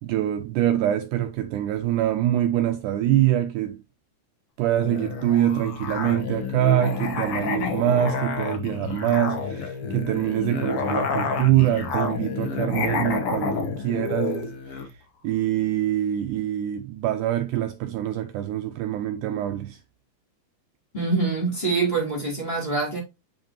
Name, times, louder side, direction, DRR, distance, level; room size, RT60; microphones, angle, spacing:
voice 1, 0.0-3.8 4.6-15.0 15.2-19.8, right 12 dB, 85° right, 1.8 m, -24 dB
Musical instrument, 4.8-14.9, left 5 dB, 90° left, 1.2 m, -29 dB
voice 2, 20.9-23.0, right 3 dB, 15° left, 3.0 m, -25 dB
7.7 x 5.1 x 2.9 m
omnidirectional pair, 4.1 m